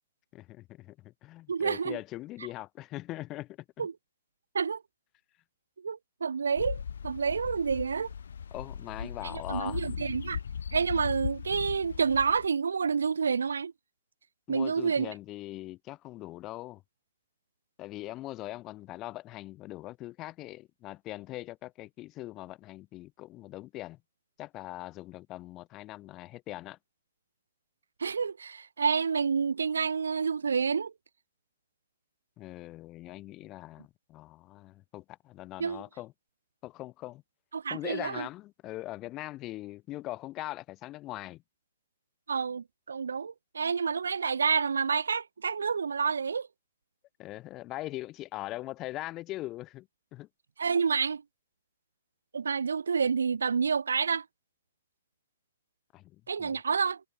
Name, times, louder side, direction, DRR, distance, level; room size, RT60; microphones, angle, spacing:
voice 1, 0.3-3.9 8.5-9.9 14.5-16.8 17.8-24.0 24.4-26.8 32.4-36.1 36.6-37.2 37.7-41.4 47.2-50.3 55.9-56.6, left 17 dB, 25° left, 3.0 m, -41 dB
voice 2, 1.5-2.0 3.8-3.9 4.5-4.8 5.8-8.1 9.2-10.4 10.7-13.7 14.5-15.1 28.0-30.9 35.6-35.8 37.5-38.3 42.3-46.5 50.6-51.2 52.3-54.2 56.3-57.0, right 6 dB, 90° right, 0.5 m, -29 dB
Birds Singing Near Stream, 6.6-12.5, left 7 dB, 80° left, 0.8 m, -38 dB
hypercardioid pair, 150°, 0 cm